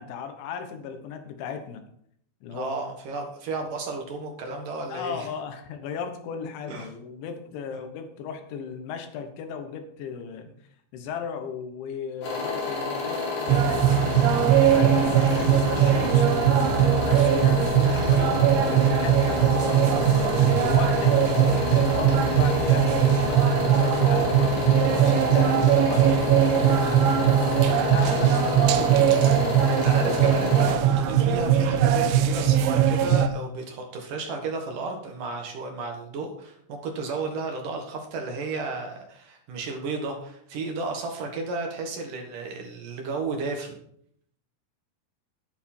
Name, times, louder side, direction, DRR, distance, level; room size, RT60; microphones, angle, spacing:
voice 1, 0.0-1.9 2.4-2.7 4.9-10.5 10.9-14.1 14.5-18.4 18.7-26.3 26.7-27.3 27.5-29.1, left 7 dB, 85° left, 7 dB, 3.6 m, -36 dB
voice 2, 2.5-5.3 6.7-6.9 7.7-7.8 29.7-43.8, right 3 dB, 60° right, 2 dB, 2.7 m, -33 dB
sound 1, 12.2-30.7, left 3 dB, 55° left, 4.9 m, -29 dB
sound 2, 13.5-33.3, right 9 dB, 90° right, 3.2 m, -20 dB
11.5 x 9.9 x 4.5 m, 0.67 s
omnidirectional pair, 5.2 m